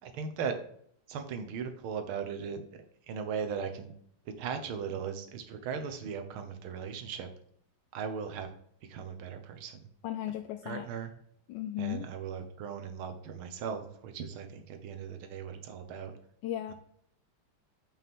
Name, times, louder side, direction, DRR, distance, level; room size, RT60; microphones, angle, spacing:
voice 1, 0.0-0.6 1.1-2.6 3.1-3.9 4.4-7.3 7.9-8.5 8.9-9.8 10.6-11.1 11.8-16.1, right 6 dB, 90° right, 7 dB, 1.8 m, -38 dB
voice 2, 10.0-10.9 11.5-12.1 16.4-16.7, left 12 dB, 75° left, 7 dB, 1.1 m, -35 dB
8.4 x 5.6 x 3.6 m, 0.66 s
omnidirectional pair, 2.3 m